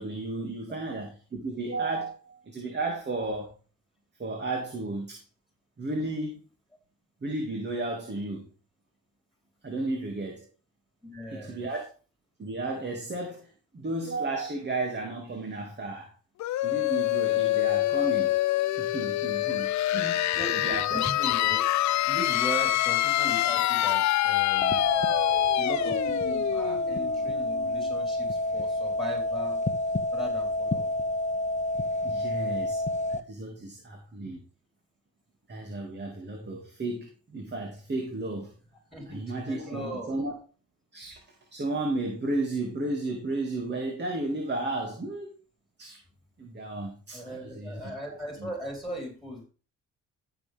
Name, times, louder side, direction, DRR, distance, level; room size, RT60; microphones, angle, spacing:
voice 1, 0.0-3.5 4.2-5.2 5.8-6.4 7.2-8.5 9.6-10.4 11.3-11.8 12.4-16.1 16.6-18.3 18.8-21.0 32.0-32.8 33.1-34.4 35.5-38.5 39.1-40.3 40.9-41.2 41.5-45.4 45.8-46.0 46.4-47.9 48.4-48.5, right 2 dB, 35° right, 2 dB, 2.5 m, -33 dB
voice 2, 11.0-11.6 20.3-21.7 22.1-24.9 25.2-29.6 30.1-30.9 38.9-40.2 47.1-49.4, equal, ahead, 1 dB, 4.6 m, -38 dB
sound 1, 16.4-27.9, left 15 dB, 65° left, 0.5 m, -26 dB
sound 2, 24.6-33.2, left 1 dB, 25° left, 1.1 m, -29 dB
13.5 x 6.8 x 3.6 m, 0.35 s
cardioid pair, 90°, 30 cm